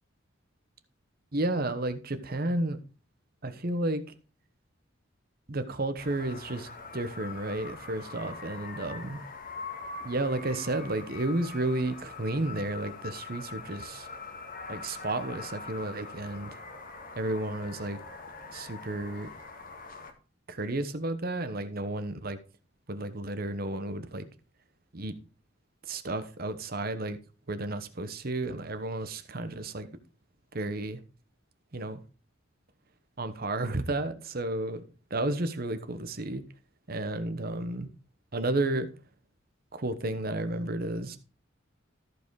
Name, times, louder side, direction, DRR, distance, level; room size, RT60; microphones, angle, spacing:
voice 1, 1.3-2.8 3.4-4.0 5.5-9.2 10.0-14.1 14.7-16.5 17.2-18.0 18.5-19.3 20.5-22.4 22.9-24.2 24.9-25.1 25.9-27.2 27.5-29.9 30.5-31.0 31.7-32.0 33.2-34.8 35.1-36.4 36.9-37.9 38.3-38.9 39.7-41.2, right 2 dB, 50° right, 1.0 m, -32 dB
sound 1, 6.0-20.1, left 4 dB, 45° left, 1.8 m, -43 dB
14.0 x 4.9 x 4.8 m
head